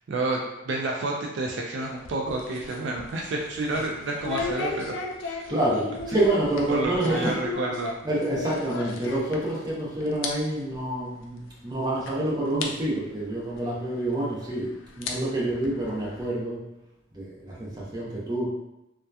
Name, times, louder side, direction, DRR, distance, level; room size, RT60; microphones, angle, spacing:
voice 1, 0.1-5.0 5.2-5.4 6.7-7.9, right 2 dB, 65° right, -1 dB, 0.3 m, -29 dB
sound 1, 1.8-9.8 10.0-10.3 10.6-10.7 11.5-11.6 12.1-12.2 12.6-12.7 14.1-14.2 14.8-16.2, left 4 dB, 90° left, 0.4 m, -35 dB
voice 2, 5.5-7.4 8.0-14.7 15.0-16.6 17.1-18.5, right 1 dB, 20° right, -6 dB, 0.6 m, -27 dB
2.7 x 2.2 x 2.2 m, 0.89 s
head